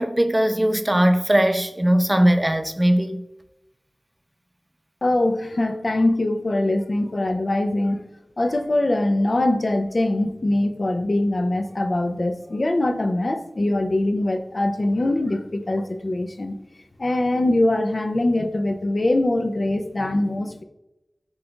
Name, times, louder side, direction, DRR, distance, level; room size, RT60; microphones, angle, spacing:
voice 1, 0.0-3.2, right 1 dB, 20° right, 8 dB, 0.4 m, -19 dB
voice 2, 5.0-8.0 8.4-16.5 17.0-20.6, left 1 dB, 60° left, 7 dB, 0.4 m, -22 dB
5.3 x 3.8 x 2.3 m, 0.93 s
wide cardioid pair, 50°, 0 cm